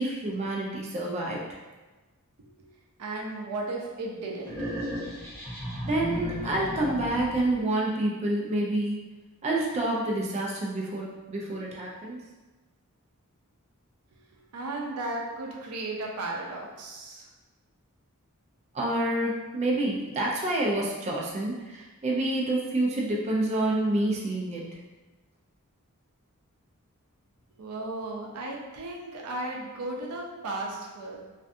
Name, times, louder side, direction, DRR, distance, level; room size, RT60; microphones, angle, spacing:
voice 1, 0.0-1.5 5.8-9.0 9.4-12.2 18.7-24.7, right 1 dB, 30° right, -3 dB, 0.3 m, -28 dB
voice 2, 3.0-4.8 14.3-17.3 27.6-31.2, right 2 dB, 85° right, -1 dB, 0.5 m, -35 dB
sound 1, 4.5-7.5, equal, 10° left, 0.9 m, -34 dB
2.5 x 2.2 x 2.5 m, 1.2 s
head